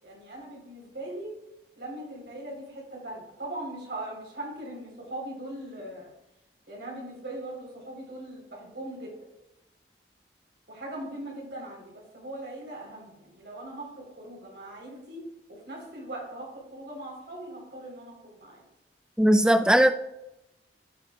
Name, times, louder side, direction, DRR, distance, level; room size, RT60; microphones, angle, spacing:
voice 1, 0.0-1.3 1.8-6.1 6.7-9.1 10.7-18.6, right 1 dB, 65° right, -2 dB, 3.7 m, -40 dB
voice 2, 19.2-19.9, right 1 dB, 5° right, 8 dB, 0.4 m, -19 dB
16.0 x 6.7 x 2.3 m, 0.92 s
head